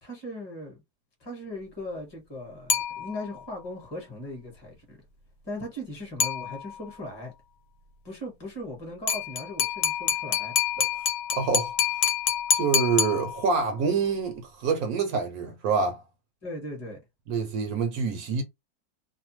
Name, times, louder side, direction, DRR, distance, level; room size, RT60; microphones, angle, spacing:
voice 1, 0.0-0.8 1.2-5.0 5.4-7.3 8.0-10.5 16.4-17.0, left 1 dB, 20° left, 0.9 m, -38 dB
sound 1, 2.7-3.5 6.2-7.0 9.1-13.8, left 8 dB, 90° left, 1.1 m, -27 dB
voice 2, 11.3-11.7 12.5-16.0 17.3-18.4, right 5 dB, 75° right, 1.0 m, -26 dB
2.7 x 2.2 x 2.9 m
omnidirectional pair, 1.6 m